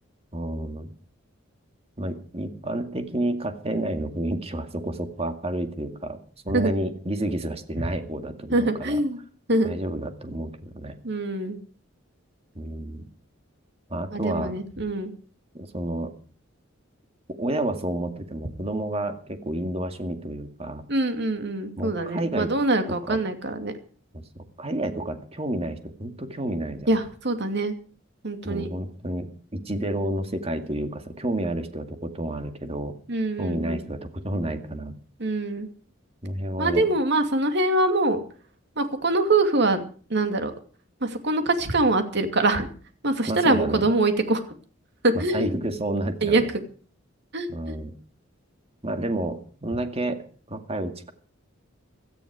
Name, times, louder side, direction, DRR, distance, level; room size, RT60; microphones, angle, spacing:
voice 1, 0.3-0.9 2.0-6.2 6.4-9.0 9.6-11.0 12.6-13.0 13.9-14.5 15.5-16.1 17.4-20.8 21.8-22.5 23.1-23.2 24.1-24.2 24.6-26.9 28.4-32.9 33.4-35.0 36.2-36.8 43.3-43.8 45.1-46.5 47.5-47.9 48.8-50.2 50.5-51.1, right 1 dB, 30° right, 7 dB, 2.2 m, -30 dB
voice 2, 8.5-9.2 9.5-9.7 11.0-11.6 14.1-15.1 20.9-23.7 26.9-27.7 28.2-28.7 33.1-33.8 35.2-35.7 36.6-38.2 38.8-39.8 40.1-40.5 41.0-42.7 43.0-44.4 45.0-45.5 46.2-46.4 47.3-47.7, right 2 dB, 60° right, 7 dB, 2.5 m, -24 dB
17.5 x 13.0 x 4.9 m, 0.41 s
head